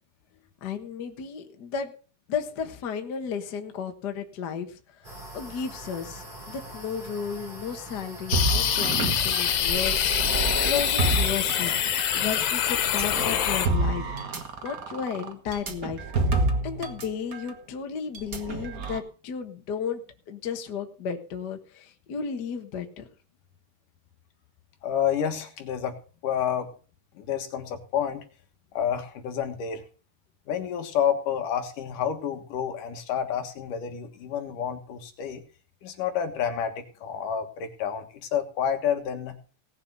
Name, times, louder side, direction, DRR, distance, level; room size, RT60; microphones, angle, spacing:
voice 1, 0.6-1.9 2.3-16.0 16.6-20.0 20.3-23.1, left 7 dB, 50° left, 5 dB, 1.2 m, -34 dB
sound 1, 5.0-13.4, right 2 dB, 15° right, 5.0 m, -44 dB
sound 2, 8.3-13.7, left 10 dB, 85° left, 3.0 m, -25 dB
sound 3, 8.3-12.2 12.8-17.1 17.3-17.5 18.1-19.0, right 3 dB, 70° right, 0.8 m, -28 dB
voice 2, 24.8-26.0 26.2-26.7 27.2-28.2 28.7-29.9 30.5-35.4 35.8-39.4, left 8 dB, 70° left, 5 dB, 3.1 m, -29 dB
18.0 x 7.2 x 5.5 m, 0.38 s
omnidirectional pair, 3.9 m